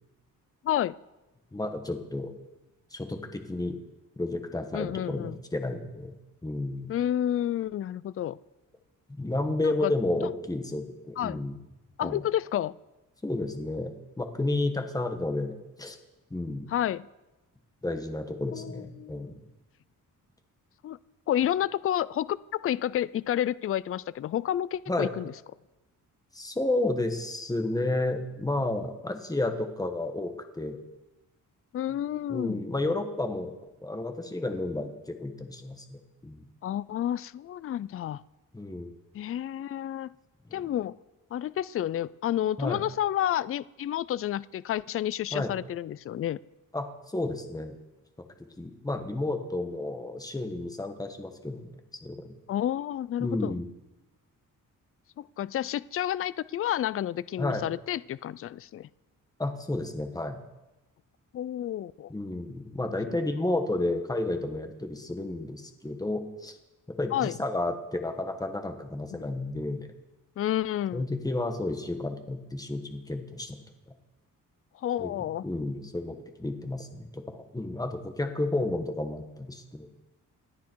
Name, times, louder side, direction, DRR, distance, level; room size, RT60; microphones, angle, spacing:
voice 1, 0.6-1.0 4.7-5.4 6.9-8.4 9.6-9.9 11.2-11.4 12.0-12.8 16.7-17.1 18.5-19.3 20.8-21.0 21.3-25.3 31.7-32.6 36.6-38.2 39.1-40.1 40.5-41.0 41.3-46.4 52.5-53.5 55.2-58.9 61.3-62.1 63.1-63.2 67.1-67.3 69.1-69.2 70.4-71.0 74.8-75.4, left 11 dB, 45° left, 19 dB, 0.4 m, -30 dB
voice 2, 1.5-2.3 2.9-3.8 4.2-6.2 6.4-6.9 9.1-11.5 12.0-12.2 13.2-16.0 16.3-16.7 17.8-19.4 24.9-25.1 26.3-30.8 32.3-33.5 33.8-36.4 38.5-38.9 40.5-40.6 42.6-42.8 45.3-45.5 46.7-47.7 48.6-51.7 52.0-52.3 53.2-53.7 57.4-57.6 59.4-60.4 62.1-66.5 66.9-69.9 70.9-73.6 75.0-75.1 75.4-79.9, left 2 dB, 10° left, 6 dB, 1.5 m, -31 dB
28.5 x 9.5 x 4.6 m, 1.0 s
wide cardioid pair, 145°, 33 cm